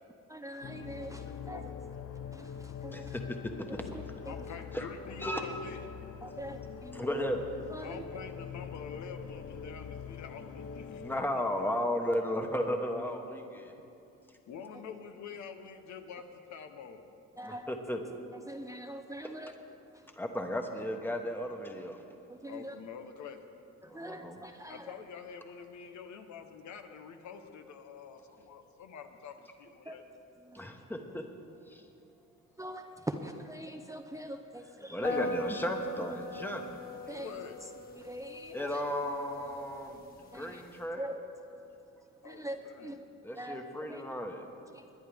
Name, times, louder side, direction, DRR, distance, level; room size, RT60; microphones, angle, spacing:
voice 1, 0.3-1.6 2.3-3.2 3.9-4.3 6.2-7.3 7.7-8.1 17.4-17.7 18.3-19.5 19.9-20.0 22.3-22.8 23.8-24.9 29.9-30.0 30.4-30.7 32.6-35.2 37.1-37.3 38.0-38.8 40.3-40.6 41.0-41.3 42.2-43.0 43.4-43.6 43.9-44.0 44.7-44.9, right 1 dB, 10° right, 5 dB, 0.6 m, -43 dB
sound 1, 0.6-11.2, left 7 dB, 50° left, 0.6 m, -44 dB
voice 2, 1.2-1.8 4.2-5.9 7.8-11.2 14.5-17.1 22.5-23.4 24.7-30.0 37.2-37.6 42.2-43.0, left 6 dB, 70° left, 6 dB, 1.0 m, -46 dB
voice 3, 2.9-3.4 3.7-3.9 4.7-4.9 5.2-5.4 6.9-7.4 10.9-13.7 17.4-18.0 20.2-22.0 23.8-24.4 30.5-31.2 31.7-31.8 34.9-36.8 38.5-41.0 43.2-44.5, equal, 5° left, 4 dB, 1.2 m, -35 dB
sound 2, 35.0-40.8, left 1 dB, 30° left, 2.1 m, -41 dB
20.5 x 10.5 x 3.5 m, 2.7 s
cardioid pair, 90°, 30 cm